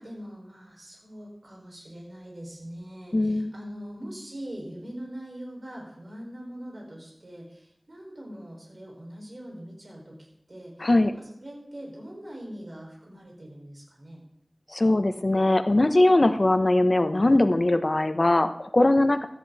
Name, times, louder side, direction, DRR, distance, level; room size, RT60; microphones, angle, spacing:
voice 1, 0.0-14.2, equal, 75° right, -2 dB, 5.7 m, -42 dB
voice 2, 3.1-3.5 10.8-11.1 14.7-19.2, left 2 dB, 60° left, 8 dB, 1.1 m, -21 dB
16.5 x 13.0 x 4.3 m, 0.76 s
wide cardioid pair, 50°, 0 cm